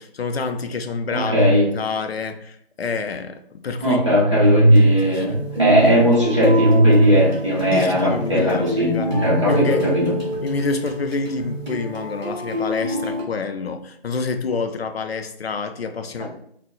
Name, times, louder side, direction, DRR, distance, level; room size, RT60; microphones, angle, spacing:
voice 1, 0.0-1.5 1.7-4.0 5.1-5.4 7.7-9.1 9.5-10.0 10.4-16.3, left 4 dB, 80° left, 8 dB, 0.5 m, -27 dB
voice 2, 1.1-1.7 3.8-10.2 16.2-16.3, equal, 30° right, -7 dB, 0.9 m, -17 dB
sound 1, 4.7-13.2, equal, 45° right, 1.3 m, -27 dB
4.0 x 2.0 x 2.2 m, 0.67 s
figure-of-eight pair, 175°, 31 cm